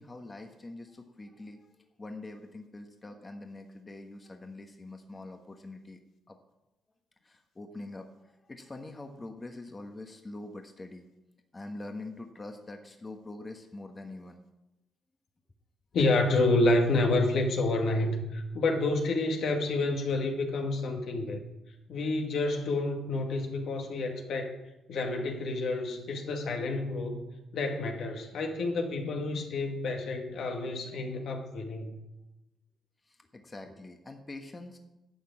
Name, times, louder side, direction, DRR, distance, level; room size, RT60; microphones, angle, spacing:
voice 1, 0.0-1.7 2.0-6.0 6.3-6.4 7.2-11.0 11.5-14.4 33.1-34.8, left 2 dB, 25° left, 4 dB, 1.3 m, -44 dB
voice 2, 15.9-21.4 21.9-24.6 24.9-27.2 27.5-32.0, left 2 dB, 70° left, 2 dB, 2.1 m, -29 dB
11.5 x 5.9 x 8.6 m, 0.95 s
cardioid pair, 90°, 0 cm